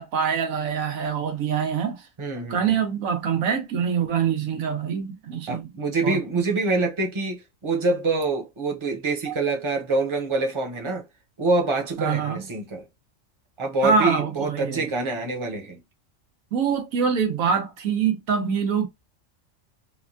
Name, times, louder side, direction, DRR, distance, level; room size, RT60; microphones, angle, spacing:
voice 1, 0.0-2.1 2.5-5.7 6.0-6.2 9.3-9.4 12.0-12.5 13.8-14.9 16.5-18.9, right 6 dB, 85° right, 1.3 m, -24 dB
voice 2, 2.2-2.6 5.5-11.0 11.4-12.8 13.6-15.8, right 3 dB, 30° right, 0.7 m, -25 dB
3.3 x 2.2 x 2.5 m
omnidirectional pair, 1.4 m